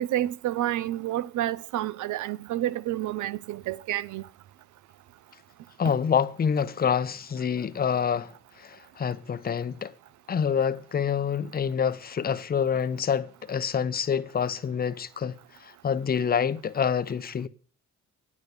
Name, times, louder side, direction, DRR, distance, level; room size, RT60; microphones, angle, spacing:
voice 1, 0.0-4.2, right 13 dB, 75° right, 0.6 m, -29 dB
voice 2, 5.8-8.3 8.6-9.9 10.3-15.3 15.6-17.5, left 7 dB, 30° left, 0.7 m, -27 dB
9.7 x 7.3 x 6.6 m
cardioid pair, 90°, 30 cm